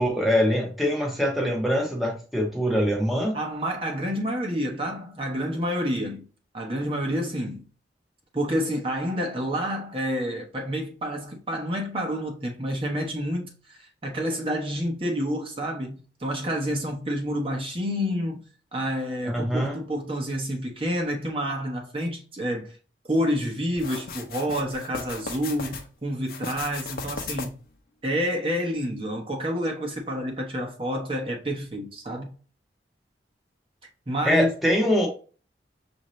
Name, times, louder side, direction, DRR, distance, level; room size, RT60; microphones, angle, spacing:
voice 1, 0.0-3.4 19.3-19.8 34.2-35.1, equal, ahead, 0.8 m, -23 dB
voice 2, 3.3-6.3 6.5-7.7 8.3-18.4 18.7-22.7 23.1-27.6 28.0-32.3 34.1-34.5, equal, 30° right, 0.9 m, -29 dB
sound 1, 23.8-25.8 26.2-27.7, left 4 dB, 50° left, 0.8 m, -36 dB
6.4 x 2.7 x 3.1 m
head